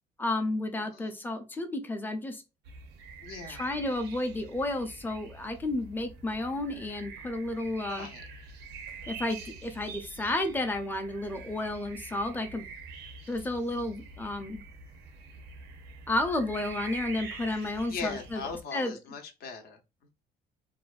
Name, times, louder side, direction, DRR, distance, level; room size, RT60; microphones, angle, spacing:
voice 1, 0.2-2.4 3.5-8.1 9.1-12.7 13.3-14.6 16.1-18.4 18.7-18.9, left 2 dB, 10° left, 0.4 m, -32 dB
sound 1, 2.6-18.6, right 4 dB, 85° right, 0.5 m, -45 dB
voice 2, 3.2-3.8 7.9-8.2 17.9-20.1, left 4 dB, 65° left, 0.6 m, -39 dB
2.5 x 2.1 x 2.3 m
cardioid pair, 110°, 17 cm